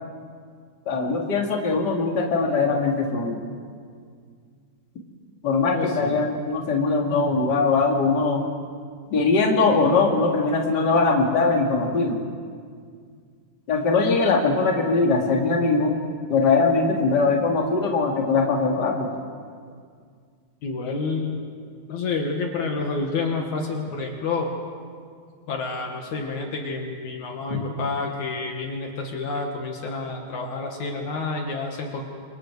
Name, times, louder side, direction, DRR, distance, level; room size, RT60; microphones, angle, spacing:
voice 1, 0.9-3.4 5.4-8.4 9.1-12.2 13.7-15.9 16.3-19.1 27.5-27.6, left 4 dB, 35° left, 0 dB, 2.8 m, -21 dB
voice 2, 5.7-6.2 14.0-14.2 20.6-21.4 21.9-24.5 25.5-32.0, left 4 dB, 65° left, 2 dB, 2.9 m, -29 dB
29.0 x 25.5 x 4.9 m, 2.1 s
omnidirectional pair, 3.8 m